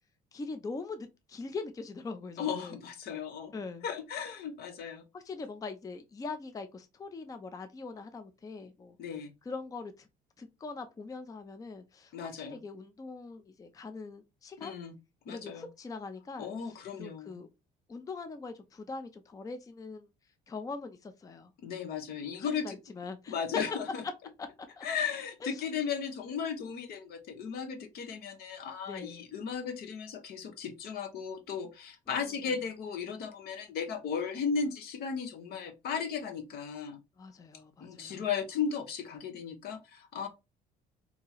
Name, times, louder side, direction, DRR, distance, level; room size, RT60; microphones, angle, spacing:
voice 1, 0.3-2.8 3.5-3.8 5.1-9.0 9.4-10.1 10.4-14.7 15.3-17.5 17.9-20.1 20.5-21.5 22.4-23.4 24.4-24.5 24.8-24.9 25.4-25.5 28.9-29.3 32.1-32.3 37.2-38.2, left 4 dB, 20° left, 0.5 m, -42 dB
voice 2, 2.4-3.6 3.8-5.0 9.0-9.3 12.1-12.6 14.6-14.9 15.3-15.6 16.4-17.4 21.6-22.8 23.3-24.0 24.8-37.0 37.8-40.3, left 6 dB, 70° left, 0.9 m, -36 dB
2.8 x 2.8 x 3.9 m
cardioid pair, 110°, 17 cm